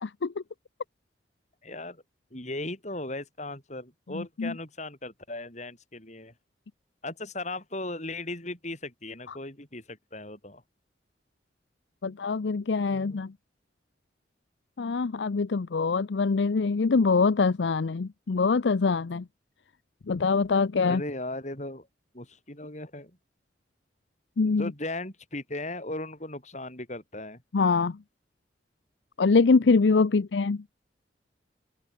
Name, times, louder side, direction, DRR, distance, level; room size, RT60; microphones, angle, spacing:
voice 1, 0.0-0.4 4.1-4.5 9.3-9.4 12.0-13.3 14.8-19.3 20.1-21.0 24.4-24.7 27.5-28.0 29.2-30.6, left 4 dB, 80° left, 0.6 m, -24 dB
voice 2, 1.6-2.0 2.3-6.3 7.0-10.6 12.0-12.1 12.9-13.2 20.8-21.9 22.1-23.2 24.4-27.4, left 2 dB, 40° left, 7.6 m, -37 dB
open air
head